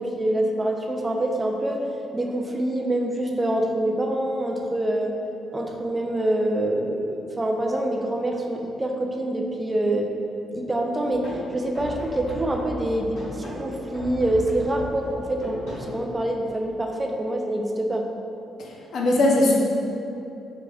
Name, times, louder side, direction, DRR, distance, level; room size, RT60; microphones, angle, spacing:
voice 1, 0.0-1.8 2.1-5.1 5.5-10.1 10.5-18.1, right 1 dB, 20° right, 1 dB, 0.3 m, -26 dB
sound 1, 11.1-16.6, equal, 85° left, 1.1 m, -37 dB
voice 2, 18.6-19.5, left 1 dB, 65° left, -2 dB, 0.5 m, -20 dB
3.5 x 3.2 x 2.3 m, 2.8 s
cardioid pair, 90°, 0 cm